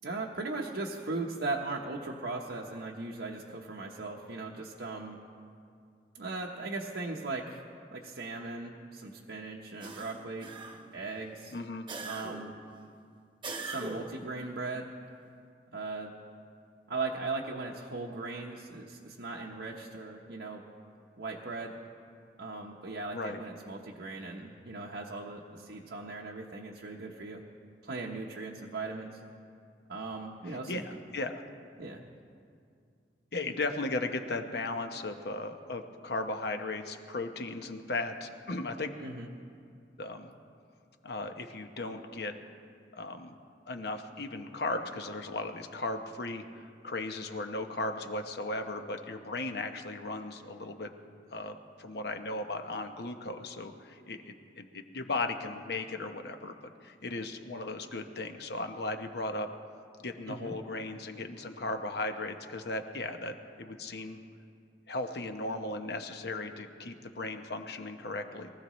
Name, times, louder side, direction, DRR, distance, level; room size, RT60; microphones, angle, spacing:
voice 1, 0.0-5.2 6.1-7.6 7.9-10.5 10.9-11.5 12.0-12.5 13.6-14.9 15.7-16.1 16.9-20.6 21.2-21.8 22.4-27.4 27.8-29.2 29.9-30.8 31.8-32.0 39.0-39.3 60.3-60.5, right 3 dB, 80° right, -2 dB, 1.0 m, -38 dB
sound 1, 9.8-11.0 11.9-12.6 13.4-14.3, right 3 dB, 30° right, 1.0 m, -41 dB
voice 2, 11.5-11.9 23.1-23.4 30.5-31.4 33.3-38.9 40.0-40.3 41.0-42.4 42.9-43.3 43.7-50.9 51.3-59.5 60.0-64.2 64.9-68.5, left 2 dB, 65° left, 6 dB, 0.9 m, -36 dB
22.5 x 15.0 x 3.1 m, 2.3 s
head